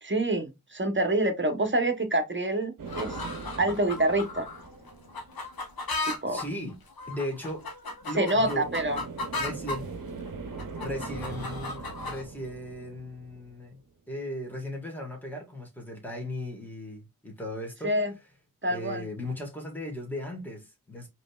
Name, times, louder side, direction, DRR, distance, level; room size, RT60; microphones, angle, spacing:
voice 1, 0.0-3.2 3.6-4.5 6.1-6.4 8.2-9.0 17.8-18.1 18.6-19.1, right 1 dB, 35° right, 0.9 m, -26 dB
sound 1, 2.8-5.6 8.4-13.8, right 4 dB, 65° right, 0.7 m, -41 dB
sound 2, 2.9-9.8 10.3-12.2, left 2 dB, 85° left, 0.8 m, -36 dB
voice 2, 6.3-6.8 7.1-7.6 8.0-9.1 9.3-9.8 10.8-13.8 14.1-17.9 18.7-21.1, left 1 dB, 5° left, 1.6 m, -37 dB
5.0 x 3.0 x 2.3 m
wide cardioid pair, 50°, 35 cm